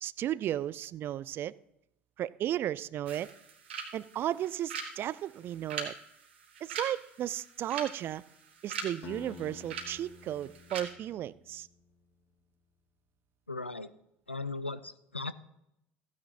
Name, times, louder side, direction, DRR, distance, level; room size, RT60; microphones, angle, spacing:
voice 1, 0.0-1.5 2.2-3.3 3.9-5.9 6.6-8.2 8.6-11.7, right 12 dB, 40° right, 0.3 m, -34 dB
sound 1, 3.1-10.8, right 5 dB, 70° right, 1.6 m, -43 dB
Acoustic guitar, 9.0-12.0, left 5 dB, 45° left, 1.2 m, -50 dB
voice 2, 13.5-13.9 14.3-15.3, left 3 dB, 90° left, 0.4 m, -37 dB
15.5 x 9.4 x 2.9 m
figure-of-eight pair, 65°, 6 cm